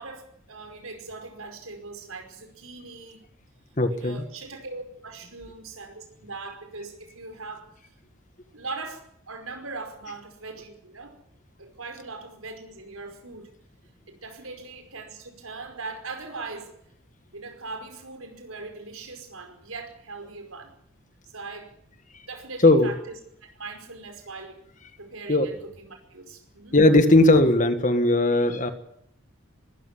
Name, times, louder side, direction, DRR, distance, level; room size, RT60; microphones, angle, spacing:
voice 1, 0.0-3.3 3.9-7.7 8.5-11.2 11.6-13.5 14.1-16.7 17.3-20.7 21.3-21.7 22.3-23.2 23.5-24.6 25.0-26.8, right 3 dB, 85° right, 6 dB, 5.2 m, -40 dB
voice 2, 3.8-4.2 22.6-22.9 25.3-25.5 26.7-28.7, left 2 dB, 35° left, 9 dB, 1.8 m, -18 dB
21.5 x 13.5 x 9.7 m, 0.73 s
head